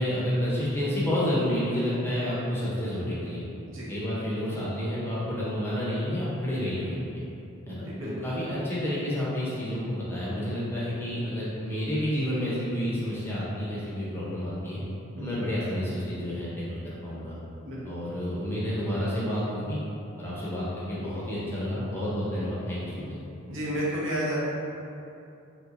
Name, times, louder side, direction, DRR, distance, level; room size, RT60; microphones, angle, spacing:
voice 1, 0.0-3.4 3.9-7.2 7.7-14.8 15.2-17.3 17.8-19.8 20.2-23.1, equal, 10° left, -9 dB, 0.6 m, -30 dB
voice 2, 7.7-8.1 15.2-15.3 17.6-17.8 23.5-24.5, equal, 70° right, -6 dB, 0.7 m, -31 dB
3.1 x 3.0 x 2.4 m, 2.7 s
head